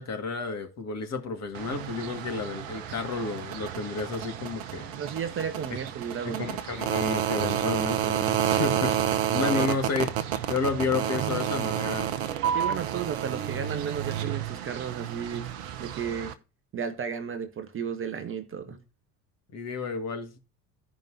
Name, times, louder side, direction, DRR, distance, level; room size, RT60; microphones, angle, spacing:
voice 1, 0.0-4.9 5.7-5.8 6.2-9.0 9.3-12.1 18.7-18.8 19.5-20.4, left 4 dB, 35° left, 1.8 m, -31 dB
sound 1, 1.5-16.3, right 10 dB, 60° right, 0.9 m, -30 dB
voice 2, 4.9-6.4 9.5-9.7 12.5-15.5 15.8-16.3 16.7-18.8, right 7 dB, 30° right, 0.8 m, -33 dB
15.0 x 5.2 x 2.6 m
figure-of-eight pair, 60°, 46 cm